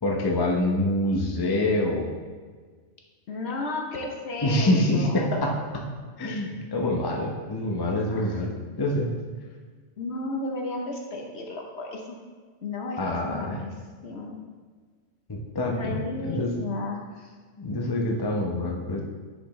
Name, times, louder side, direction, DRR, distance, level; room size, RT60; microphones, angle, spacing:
voice 1, 0.0-2.1 4.4-5.6 6.2-8.5 8.8-9.1 13.0-13.6 15.3-16.5 17.6-19.0, left 1 dB, 20° left, 0 dB, 0.7 m, -26 dB
voice 2, 3.3-5.3 8.0-8.4 10.0-12.2 12.6-13.7 14.0-14.4 15.7-17.3, left 2 dB, 55° left, 1 dB, 1.0 m, -33 dB
10.5 x 5.2 x 3.2 m, 1.5 s
omnidirectional pair, 1.4 m